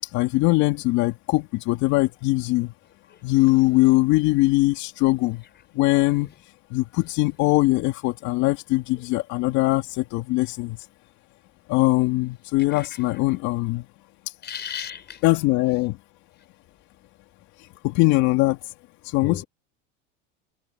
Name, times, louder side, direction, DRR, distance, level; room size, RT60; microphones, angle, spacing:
voice 1, 0.1-2.7 3.2-5.4 5.8-6.3 6.7-10.8 11.7-13.8 15.2-16.0 17.8-18.7 19.0-19.4, left 20 dB, 60° left, 2.5 m, -21 dB
voice 2, 14.4-15.2 19.2-19.5, left 8 dB, 30° left, 5.3 m, -34 dB
supercardioid pair, 120°, 33 cm